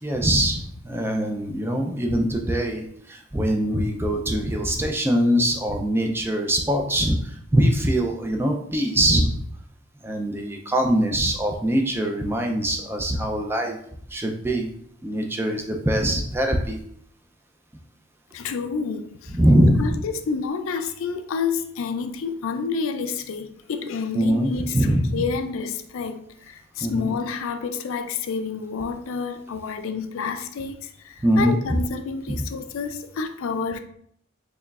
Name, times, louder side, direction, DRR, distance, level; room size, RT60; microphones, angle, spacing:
voice 1, 0.0-9.4 10.0-13.8 14.1-14.7 15.0-16.8 19.3-20.0 24.1-25.3 26.8-27.1 31.2-31.6 32.3-32.5, equal, 10° right, 0.3 m, -22 dB
voice 2, 18.3-19.4 19.8-24.8 25.1-33.8, left 5 dB, 70° left, 0.4 m, -29 dB
4.6 x 3.0 x 2.3 m
head